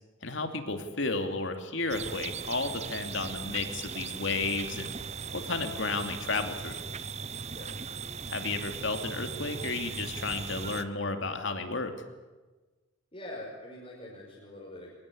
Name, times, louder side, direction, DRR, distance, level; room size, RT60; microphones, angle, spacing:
voice 1, 0.2-4.9 5.3-6.8 8.3-11.9, left 3 dB, 65° left, 6 dB, 2.7 m, -32 dB
sound 1, 1.9-10.8, right 6 dB, 30° right, 0.8 m, -38 dB
voice 2, 13.1-14.9, left 1 dB, 30° left, -5 dB, 5.6 m, -44 dB
24.5 x 20.5 x 8.7 m, 1.2 s
head